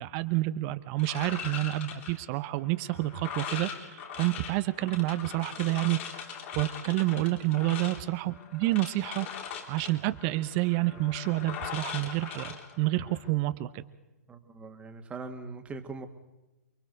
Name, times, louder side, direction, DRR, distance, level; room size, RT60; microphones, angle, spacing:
voice 1, 0.0-9.3 9.7-13.8, right 17 dB, 35° right, 12 dB, 0.8 m, -29 dB
sound 1, 1.0-13.3, left 7 dB, 45° left, 3.5 m, -41 dB
voice 2, 14.3-16.1, right 4 dB, 15° right, 6 dB, 1.9 m, -41 dB
28.5 x 22.5 x 4.0 m, 1.1 s
figure-of-eight pair, 120°, 9 cm